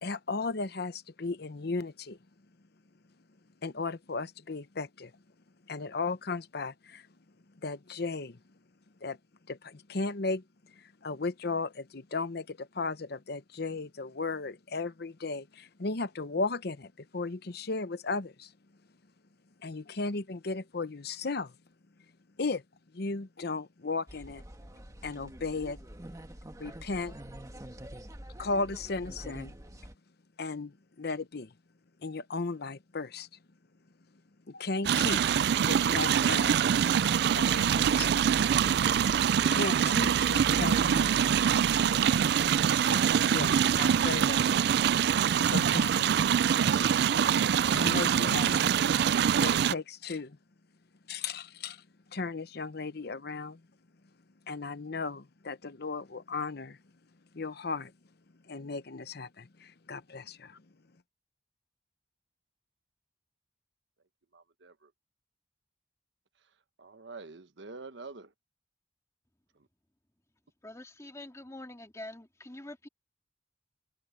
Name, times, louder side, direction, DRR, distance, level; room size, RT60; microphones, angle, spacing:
voice 1, 0.0-2.2 3.6-5.1 5.7-7.1 7.6-8.4 9.0-9.2 9.5-10.4 11.0-18.5 19.6-21.5 22.4-22.6 22.9-24.4 25.0-25.8 26.6-27.1 28.4-29.5 30.4-31.5 32.0-33.3 34.5-35.4 35.7-36.6 37.3-38.2 39.5-41.2 42.7-44.8 45.5-46.4 47.7-48.6 49.3-50.4 51.1-51.8 52.1-53.6 54.5-56.8 57.3-57.9 58.5-60.6, left 3 dB, 60° left, 0.9 m, -35 dB
sound 1, 24.1-29.9, right 1 dB, 20° right, 1.7 m, -46 dB
sound 2, 34.8-49.7, right 8 dB, 65° right, 0.4 m, -25 dB
voice 2, 64.3-64.9 66.8-68.3 69.5-69.7, right 3 dB, 90° right, 1.3 m, -46 dB
voice 3, 70.6-72.9, left 1 dB, 15° left, 2.2 m, -45 dB
head